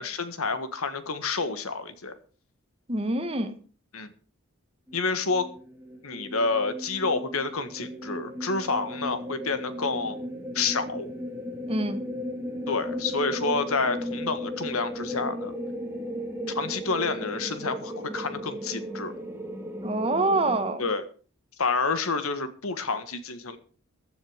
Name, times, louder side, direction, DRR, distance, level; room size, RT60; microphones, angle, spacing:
voice 1, 0.0-2.1 3.9-4.1 4.9-5.5 6.0-10.2 10.5-11.1 12.7-15.5 16.5-19.1 20.8-21.0 21.6-23.6, left 4 dB, 70° left, 11 dB, 1.6 m, -29 dB
voice 2, 2.9-3.6 11.7-12.0 19.8-20.9, right 2 dB, 25° right, 9 dB, 1.4 m, -26 dB
sound 1, 4.9-20.7, equal, 10° right, 2.2 m, -36 dB
15.5 x 10.5 x 5.0 m, 0.40 s
head